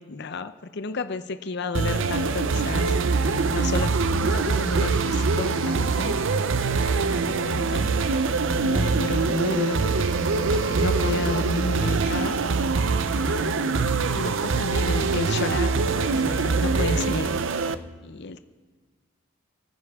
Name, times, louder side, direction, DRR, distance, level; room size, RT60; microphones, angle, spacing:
voice 1, 0.0-6.2 7.0-12.4 13.2-13.8 14.1-17.4 18.0-18.4, left 3 dB, 55° left, 11 dB, 0.6 m, -32 dB
sound 1, 1.7-17.7, right 4 dB, 65° right, 0.6 m, -24 dB
28.5 x 9.9 x 3.6 m, 1.4 s
head